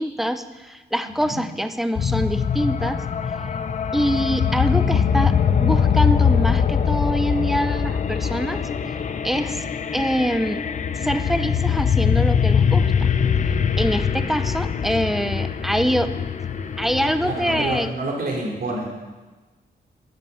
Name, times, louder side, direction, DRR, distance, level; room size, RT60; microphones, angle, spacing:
voice 1, 0.0-3.0 3.9-8.6 9.2-9.6 9.9-10.6 11.0-13.1 13.8-16.1 16.8-17.9, equal, ahead, 10 dB, 0.6 m, -24 dB
sound 1, 2.0-17.9, left 7 dB, 45° left, 0.7 m, -22 dB
voice 2, 17.2-18.9, right 2 dB, 60° right, -1 dB, 3.2 m, -28 dB
11.0 x 10.5 x 7.1 m, 1.2 s
wide cardioid pair, 160°, 17 cm